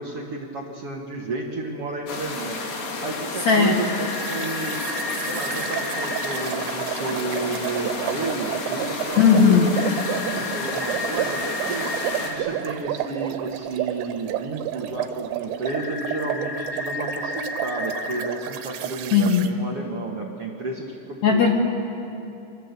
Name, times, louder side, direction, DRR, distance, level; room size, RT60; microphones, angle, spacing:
voice 1, 0.0-2.6 3.0-4.8 5.2-12.0 12.2-21.6, right 2 dB, 65° right, -1 dB, 1.4 m, -32 dB
sound 1, 2.1-12.3, left 3 dB, 90° left, 5.7 m, -32 dB
sound 2, 3.8-6.4 9.7-12.4 15.7-18.3, left 2 dB, 15° left, 1.9 m, -33 dB
sound 3, 4.1-19.5, right 11 dB, 90° right, 3.7 m, -31 dB
voice 2, 9.2-9.7 19.1-19.4 21.2-21.6, left 6 dB, 70° left, 2 dB, 1.6 m, -16 dB
29.5 x 24.0 x 8.4 m, 2.9 s
omnidirectional pair, 5.8 m